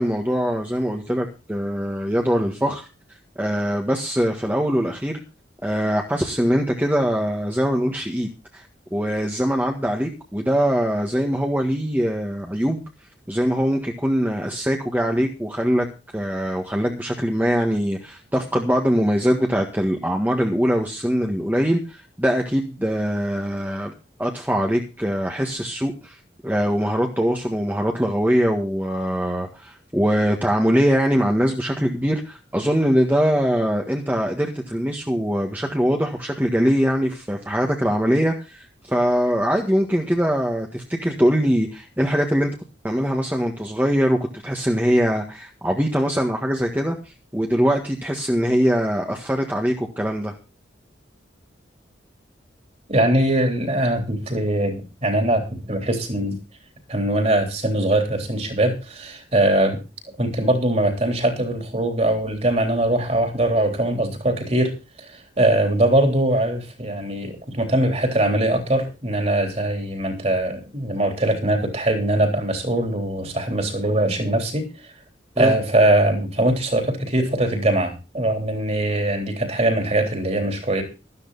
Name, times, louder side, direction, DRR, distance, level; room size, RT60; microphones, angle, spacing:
voice 1, 0.0-2.8 3.4-5.2 5.6-8.6 8.9-12.8 13.3-15.9 16.1-23.9 24.2-26.2 26.4-42.5 42.8-44.2 44.4-50.3 75.4-75.6, equal, 10° right, 1 dB, 1.6 m, -22 dB
voice 2, 52.9-56.4 56.9-59.8 60.2-74.7 75.4-80.8, right 1 dB, 35° right, 5 dB, 3.5 m, -21 dB
13.0 x 12.5 x 4.1 m, 0.30 s
head